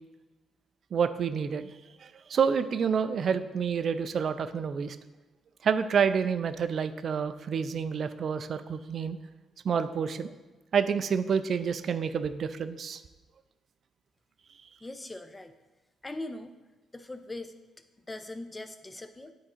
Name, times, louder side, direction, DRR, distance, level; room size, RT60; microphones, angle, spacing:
voice 1, 0.9-1.7 2.3-5.0 5.6-9.2 9.6-10.3 10.7-13.0, right 6 dB, 55° right, 11 dB, 0.4 m, -28 dB
voice 2, 14.8-15.5 16.0-16.6 16.9-17.5 18.1-19.3, left 2 dB, 15° left, 9 dB, 0.6 m, -40 dB
9.2 x 3.7 x 4.4 m, 1.1 s
cardioid pair, 90°, 0 cm